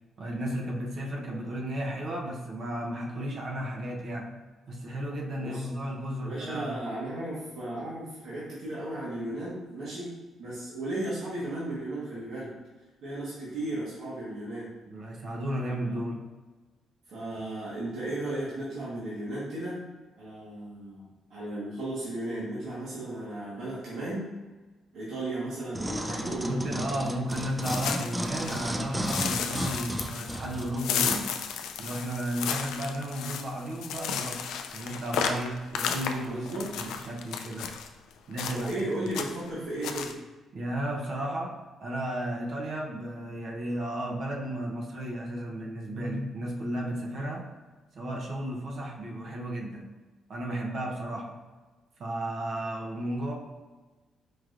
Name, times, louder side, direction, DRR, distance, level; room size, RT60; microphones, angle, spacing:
voice 1, 0.2-6.9 14.9-16.3 26.4-31.3 31.8-36.5 36.7-37.8 38.3-38.8 40.5-47.5 47.9-49.9 50.3-51.4 52.0-53.3, right 1 dB, 60° right, -1 dB, 0.8 m, -34 dB
voice 2, 6.2-10.1 10.4-12.5 13.0-14.7 15.6-16.0 17.1-19.8 20.2-21.0 21.3-24.3 24.9-26.8 36.2-36.7 38.5-40.1, right 1 dB, 75° right, -9 dB, 1.3 m, -35 dB
sound 1, 25.7-31.2 31.8-31.9, right 1 dB, 10° right, 0.3 m, -34 dB
sound 2, 27.3-28.7 29.1-37.9 38.4-38.8 39.1-39.5 39.8-40.1, left 7 dB, 85° left, 0.3 m, -33 dB
4.7 x 3.0 x 2.5 m, 1.2 s
cardioid pair, 90°, 0 cm